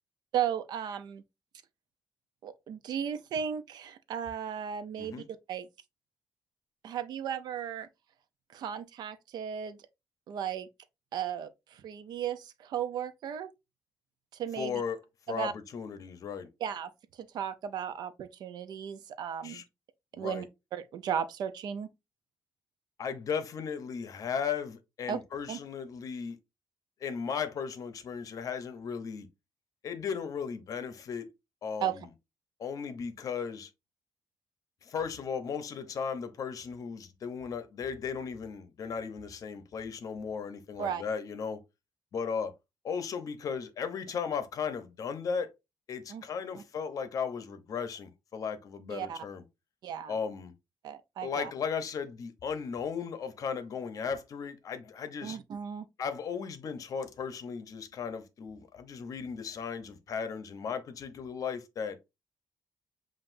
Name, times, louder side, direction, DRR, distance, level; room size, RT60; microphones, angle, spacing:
voice 1, 0.3-1.2 2.4-5.2 5.5-5.7 6.8-7.9 8.5-9.8 10.3-10.7 11.1-13.5 14.3-14.8 15.3-15.5 16.6-16.9 17.2-19.6 20.1-20.5 20.7-21.9 25.1-25.2 25.5-25.6 31.8-32.0 40.8-41.0 46.1-46.2 46.6-46.7 48.9-49.2 49.8-50.1 50.8-51.5 55.2-55.9, right 8 dB, 75° right, 0.6 m, -35 dB
voice 2, 14.6-15.0 15.3-16.5 19.4-19.6 20.1-20.5 23.0-26.4 27.0-29.3 29.8-31.3 31.6-32.1 32.6-33.7 34.8-41.6 42.1-42.5 42.8-45.5 45.9-49.4 50.1-50.5 51.2-55.4 56.0-62.0, left 6 dB, 55° left, 0.7 m, -36 dB
7.6 x 2.5 x 2.6 m
cardioid pair, 135°, 7 cm